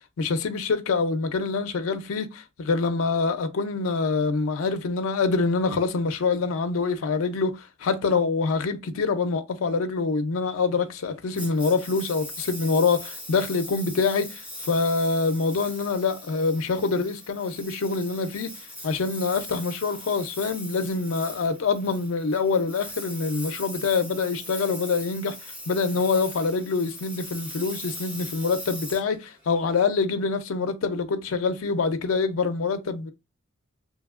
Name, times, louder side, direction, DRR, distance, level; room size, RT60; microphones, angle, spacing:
voice 1, 0.2-18.5 18.8-33.1, left 4 dB, 85° left, 0.4 m, -25 dB
Engine, 11.4-29.8, left 1 dB, 5° right, 0.7 m, -40 dB
2.8 x 2.8 x 2.3 m
head